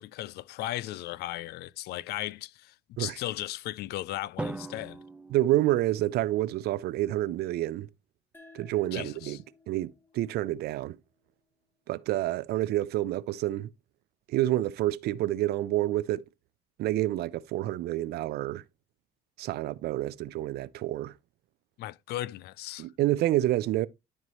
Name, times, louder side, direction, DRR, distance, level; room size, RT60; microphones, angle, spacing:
voice 1, 0.0-5.0 8.9-9.4 21.8-22.9, left 15 dB, 70° left, 0.4 m, -36 dB
Drum, 4.4-6.5, right 2 dB, 5° right, 0.5 m, -40 dB
voice 2, 5.3-7.9 8.5-9.4 9.7-11.0 11.9-13.7 14.3-16.2 16.8-18.6 19.4-21.1 22.8-23.9, right 15 dB, 75° right, 0.5 m, -28 dB
sound 1, 8.3-11.5, left 3 dB, 10° left, 1.2 m, -58 dB
12.0 x 4.7 x 2.9 m
cardioid pair, 110°, 17 cm